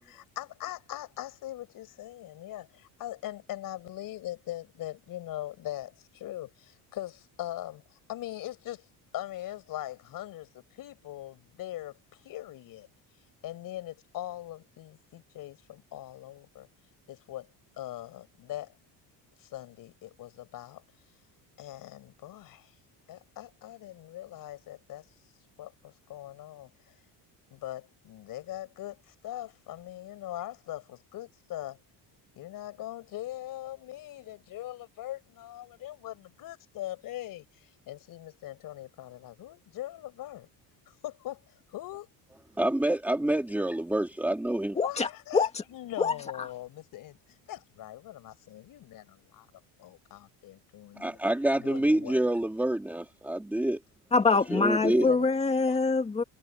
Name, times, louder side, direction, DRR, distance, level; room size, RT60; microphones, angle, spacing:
voice 1, 0.0-8.9 9.1-12.9 13.4-16.7 17.1-17.5 17.8-18.7 19.4-20.8 21.6-22.7 23.1-25.1 25.6-26.7 27.5-31.8 32.4-40.5 41.0-42.1 44.8-49.5 49.8-51.2 51.6-52.2 54.8-55.3 55.7-55.8, left 14 dB, 55° left, 5.8 m, -41 dB
voice 2, 42.6-44.8 51.0-53.8 54.5-55.1, right 1 dB, 5° right, 2.6 m, -27 dB
voice 3, 44.8-45.1 45.3-45.6 46.0-46.5 54.1-56.2, left 4 dB, 15° left, 2.1 m, -25 dB
cardioid pair, 165°, 41 cm